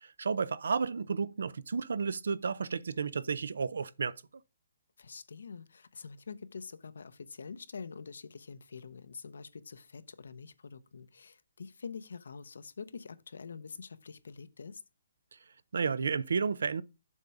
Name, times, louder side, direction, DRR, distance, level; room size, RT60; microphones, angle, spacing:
voice 1, 0.0-4.1 15.7-16.8, right 5 dB, 75° right, 0.6 m, -32 dB
voice 2, 5.0-14.8, left 5 dB, 80° left, 0.8 m, -46 dB
7.3 x 5.5 x 4.8 m
hypercardioid pair, 165°, 0 cm